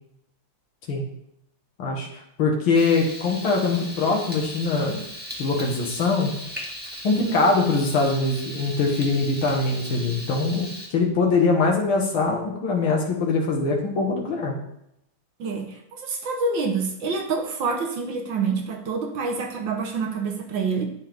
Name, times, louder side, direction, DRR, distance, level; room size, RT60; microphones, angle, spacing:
voice 1, 1.8-5.0 5.4-6.3 7.0-14.5, left 3 dB, 85° left, -1 dB, 2.2 m, -23 dB
Frying (food), 2.7-10.9, equal, 5° right, 1.3 m, -38 dB
voice 2, 7.1-7.4 15.4-20.8, right 4 dB, 70° right, 4 dB, 1.9 m, -27 dB
9.8 x 6.4 x 3.5 m, 0.77 s
omnidirectional pair, 2.2 m